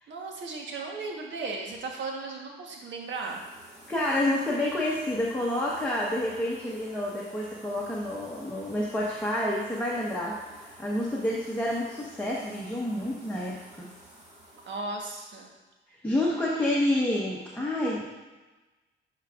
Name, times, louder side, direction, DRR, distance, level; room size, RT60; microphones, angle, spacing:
voice 1, 0.1-3.4 14.6-15.5, right 3 dB, 65° right, 0 dB, 1.3 m, -36 dB
sound 1, 3.0-14.8, right 1 dB, 30° right, 2.1 m, -51 dB
voice 2, 3.9-13.9 16.0-18.1, left 1 dB, 10° left, -6 dB, 1.2 m, -29 dB
11.0 x 4.6 x 2.5 m, 1.2 s
cardioid pair, 90°, 20 cm